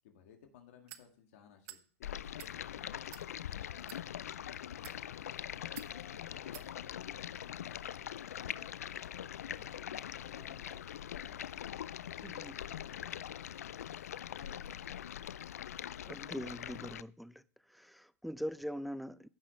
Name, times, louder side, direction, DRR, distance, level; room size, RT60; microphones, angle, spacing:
voice 1, 0.0-3.0 3.3-8.9 9.4-11.6 12.5-13.6 14.4-15.2, left 8 dB, 65° left, 4 dB, 1.9 m, -61 dB
sound 1, 0.9-1.1 1.6-1.8 2.3-2.5 3.1-3.3 3.8-4.0 4.7-5.0 5.8-5.9 6.5-6.7, right 15 dB, 60° right, 0.7 m, -50 dB
Stream, 2.0-17.0, left 10 dB, 80° left, 0.3 m, -43 dB
sound 2, 4.9-16.0, left 5 dB, 30° left, 4.5 m, -65 dB
voice 2, 12.2-12.6 16.0-17.4 17.7-19.3, equal, ahead, 16 dB, 0.5 m, -42 dB
15.5 x 5.9 x 3.1 m, 0.42 s
hypercardioid pair, 100°, 8 cm